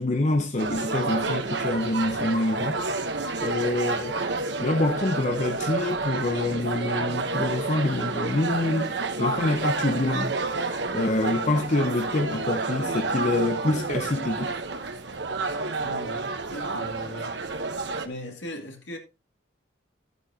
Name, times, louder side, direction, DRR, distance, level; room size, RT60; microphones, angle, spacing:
voice 1, 0.0-2.8 3.4-4.3 4.6-10.4 10.7-14.5, left 2 dB, 35° left, 0.7 m, -26 dB
sound 1, 0.6-18.1, right 3 dB, 60° right, 1.0 m, -29 dB
voice 2, 15.8-16.2 16.5-17.4 18.0-19.0, left 1 dB, 65° left, 2.6 m, -39 dB
12.5 x 8.3 x 2.8 m
head